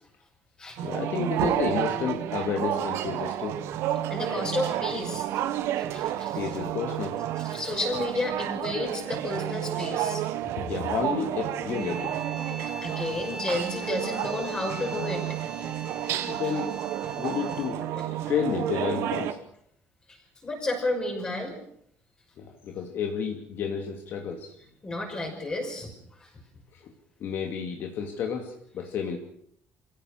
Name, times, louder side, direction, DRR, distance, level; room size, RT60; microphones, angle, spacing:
voice 1, 0.8-3.7 6.3-7.2 10.6-12.1 16.3-16.7 17.2-17.8 18.3-19.4 22.4-24.5 26.8-26.9 27.2-29.2, left 6 dB, 50° left, 3 dB, 2.5 m, -31 dB
sound 1, 0.8-19.3, right 12 dB, 70° right, 1.4 m, -31 dB
voice 2, 4.1-5.3 5.8-6.4 7.4-10.2 12.8-15.4 16.2-16.3 17.9-18.0 20.1-21.6 24.8-25.9 26.2-26.3, left 2 dB, 20° left, 0 dB, 5.9 m, -32 dB
sound 2, 11.7-17.9, right 2 dB, 10° right, 1.7 m, -41 dB
26.5 x 17.0 x 6.5 m, 0.68 s
cardioid pair, 165°, 5 cm